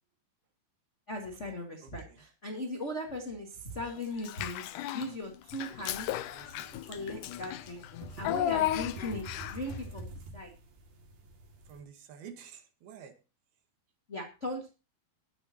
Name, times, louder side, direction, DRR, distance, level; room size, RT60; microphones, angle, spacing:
voice 1, 1.1-4.6 4.9-6.1 6.9-7.8 8.2-10.5 14.1-14.7, left 1 dB, 30° left, 0 dB, 1.3 m, -38 dB
voice 2, 1.8-2.2 6.3-6.8 11.7-13.1, right 7 dB, 90° right, 6 dB, 3.6 m, -50 dB
Child speech kid speaking / Bathtub (filling or washing), 4.2-5.1 5.5-9.7, left 12 dB, 75° left, 1.9 m, -34 dB
sound 1, 5.8-11.8, right 1 dB, 70° right, 4.0 m, -47 dB
21.0 x 8.7 x 2.9 m, 0.32 s
omnidirectional pair, 4.3 m